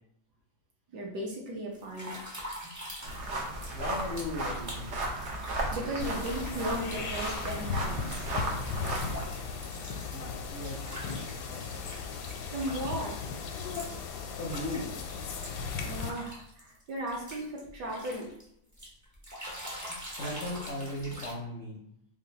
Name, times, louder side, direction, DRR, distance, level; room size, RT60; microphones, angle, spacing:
voice 1, 0.9-2.2 5.7-8.3 12.4-13.3 15.8-18.3, right 1 dB, 65° right, -2 dB, 1.4 m, -36 dB
sound 1, 1.7-3.3 3.6-12.0 12.3-14.0 14.4-18.4 18.7-21.3, equal, 20° right, 0.5 m, -44 dB
sound 2, 3.0-9.3, right 1 dB, 85° right, 0.6 m, -35 dB
voice 2, 3.7-4.9 10.1-12.0 14.4-14.9 20.2-21.8, left 1 dB, 65° left, -4 dB, 0.7 m, -38 dB
sound 3, 6.0-16.1, left 5 dB, 85° left, 1.4 m, -37 dB
3.8 x 2.2 x 3.9 m, 0.74 s
omnidirectional pair, 2.1 m